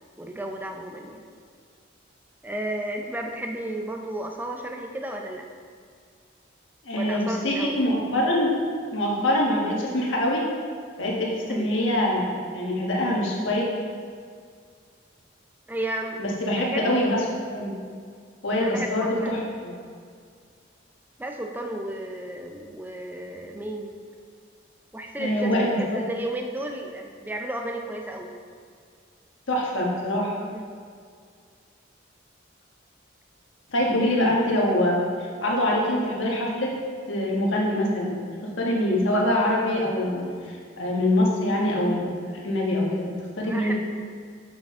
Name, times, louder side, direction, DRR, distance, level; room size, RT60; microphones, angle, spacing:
voice 1, 0.2-1.2 2.4-5.4 6.9-7.8 11.5-11.7 15.7-16.2 16.6-16.9 18.6-19.3 21.2-23.9 24.9-28.3 30.5-30.7 43.4-43.8, right 1 dB, 10° right, 2 dB, 0.5 m, -33 dB
voice 2, 6.8-8.5 8.9-10.4 11.0-13.7 16.2-17.7 18.4-19.7 25.2-26.0 29.5-30.4 33.7-35.0 35.4-36.7 37.1-38.2 38.6-43.8, left 1 dB, 85° left, -3 dB, 1.4 m, -24 dB
6.4 x 6.1 x 3.6 m, 2.1 s
head